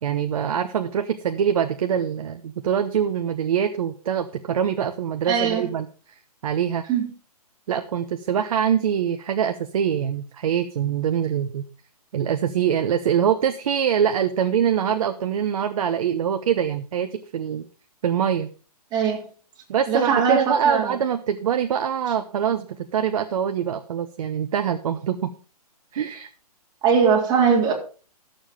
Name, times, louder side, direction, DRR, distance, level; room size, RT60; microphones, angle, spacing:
voice 1, 0.0-5.9 6.4-6.8 7.7-11.6 12.1-17.6 18.0-18.5 19.7-25.3 25.9-26.3, right 8 dB, 60° right, 7 dB, 1.0 m, -24 dB
voice 2, 5.3-5.7 6.9-7.1 18.9-19.2 19.9-20.9 26.8-27.7, right 6 dB, 20° right, -1 dB, 3.4 m, -20 dB
13.0 x 7.2 x 5.2 m, 0.38 s
hypercardioid pair, 140°, 20 cm